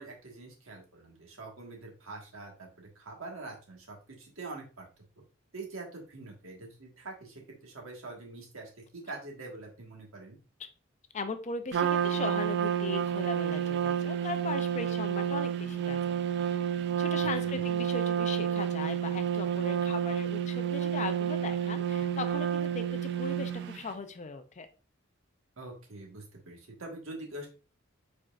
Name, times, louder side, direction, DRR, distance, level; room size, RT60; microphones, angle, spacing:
voice 1, 0.0-4.8 5.5-10.4 17.2-17.7 25.6-27.5, right 2 dB, 80° right, 0 dB, 1.5 m, -45 dB
voice 2, 11.1-16.6 17.0-24.7, left 4 dB, 35° left, 9 dB, 0.5 m, -38 dB
Trumpet, 11.7-23.8, right 9 dB, 55° right, 0.3 m, -30 dB
4.8 x 4.4 x 2.4 m, 0.34 s
head